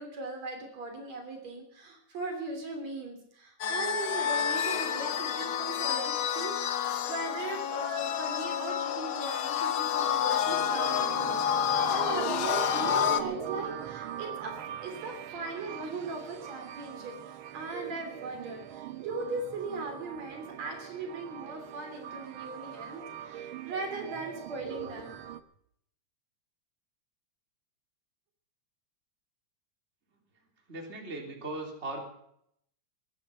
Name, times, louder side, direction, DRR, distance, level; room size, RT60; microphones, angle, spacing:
voice 1, 0.0-25.2, right 3 dB, 65° right, 3 dB, 4.4 m, -39 dB
sound 1, 3.6-13.2, left 9 dB, 65° left, 1.4 m, -29 dB
sound 2, 10.0-25.4, right 10 dB, 85° right, 1.1 m, -41 dB
voice 2, 30.7-32.0, right 2 dB, 20° right, 0 dB, 3.4 m, -38 dB
19.0 x 13.0 x 5.7 m, 0.71 s
omnidirectional pair, 3.4 m